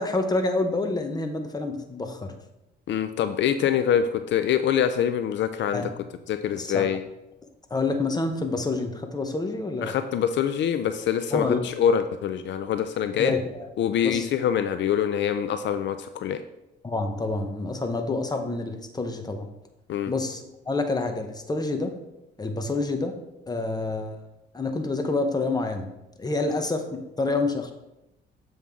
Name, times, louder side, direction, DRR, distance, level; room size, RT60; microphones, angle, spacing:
voice 1, 0.0-2.3 5.7-5.9 6.6-6.9 7.7-9.9 11.3-11.6 13.2-13.7 14.0-14.3 16.8-19.5 20.1-21.9 22.4-23.1 23.5-24.2 24.5-25.9 26.2-27.7, left 3 dB, 20° left, 5 dB, 1.0 m, -28 dB
voice 2, 2.9-5.9 6.3-7.0 9.8-13.3 13.8-16.4 19.9-20.1, left 9 dB, 65° left, 9 dB, 0.5 m, -25 dB
7.5 x 5.4 x 3.6 m, 0.91 s
cardioid pair, 90°, 20 cm